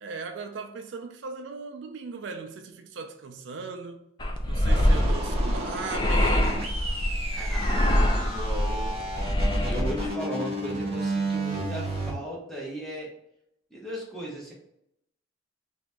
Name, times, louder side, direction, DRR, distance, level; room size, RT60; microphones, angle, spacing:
voice 1, 0.0-4.0 4.4-6.6, right 4 dB, 70° right, 0.4 m, -38 dB
sound 1, 4.2-10.1, left 1 dB, 25° left, 0.4 m, -24 dB
sound 2, 4.7-12.1, right 2 dB, 30° right, 0.8 m, -32 dB
voice 2, 7.3-8.9 9.6-13.1 13.7-14.5, right 1 dB, ahead, 1.0 m, -37 dB
2.9 x 2.7 x 3.4 m
head